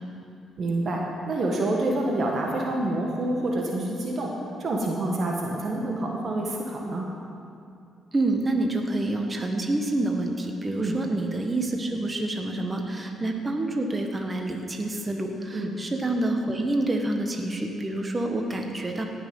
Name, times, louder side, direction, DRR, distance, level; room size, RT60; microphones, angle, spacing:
voice 1, 0.6-4.3 4.6-7.1 10.8-11.0 15.5-15.7, right 2 dB, 55° right, -1 dB, 1.5 m, -27 dB
voice 2, 8.1-19.0, right 2 dB, 30° right, 3 dB, 1.2 m, -27 dB
18.0 x 6.1 x 5.5 m, 2.5 s
supercardioid pair, 55°, 0 cm